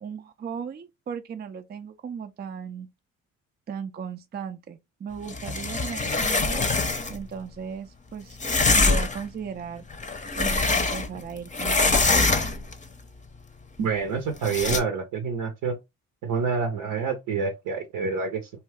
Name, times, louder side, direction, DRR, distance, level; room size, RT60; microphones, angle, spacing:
voice 1, 0.0-2.9 3.7-6.7 7.1-8.4 8.7-9.9 10.4-12.5, right 7 dB, 30° right, 0.4 m, -36 dB
sound 1, 5.3-7.2 8.4-9.3 9.9-11.2 11.5-12.7 14.4-14.8, left 3 dB, 20° left, 0.7 m, -24 dB
voice 2, 13.8-15.8 16.2-18.5, right 5 dB, 65° right, 0.7 m, -27 dB
2.7 x 2.2 x 3.4 m
hypercardioid pair, 45°, 36 cm